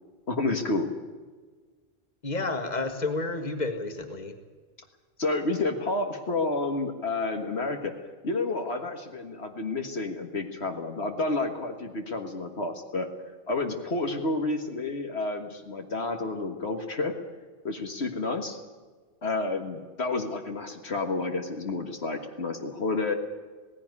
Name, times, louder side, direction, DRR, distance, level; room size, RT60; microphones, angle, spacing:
voice 1, 0.3-0.9 5.2-7.9 8.2-13.1 13.5-17.1 17.6-18.6 19.2-23.1, left 2 dB, 70° left, 4 dB, 1.9 m, -30 dB
voice 2, 2.2-4.3, left 3 dB, 40° left, 6 dB, 2.0 m, -30 dB
17.5 x 16.0 x 9.6 m, 1.4 s
omnidirectional pair, 1.1 m